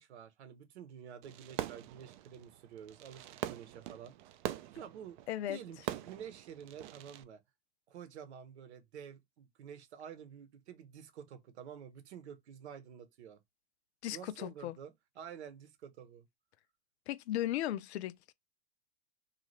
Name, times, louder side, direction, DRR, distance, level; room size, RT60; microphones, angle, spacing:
voice 1, 0.0-4.2 4.7-5.2 5.5-7.4 7.9-13.4 14.1-16.3, right 8 dB, 75° right, 0.9 m, -49 dB
Fireworks, 1.2-7.2, right 13 dB, 45° right, 0.4 m, -43 dB
voice 2, 5.3-5.6 14.0-14.8 17.1-18.3, left 13 dB, 70° left, 0.5 m, -36 dB
2.7 x 2.4 x 3.1 m
hypercardioid pair, 125°, 34 cm